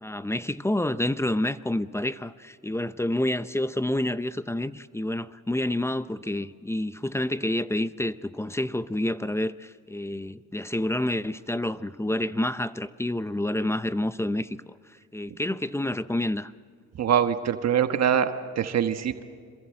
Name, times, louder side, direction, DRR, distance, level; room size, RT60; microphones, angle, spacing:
voice 1, 0.0-14.7 15.1-16.5, left 1 dB, 10° left, 0.7 m, -28 dB
voice 2, 17.0-19.2, right 8 dB, 60° right, 1.3 m, -24 dB
27.0 x 22.0 x 7.6 m
cardioid pair, 90°, 30 cm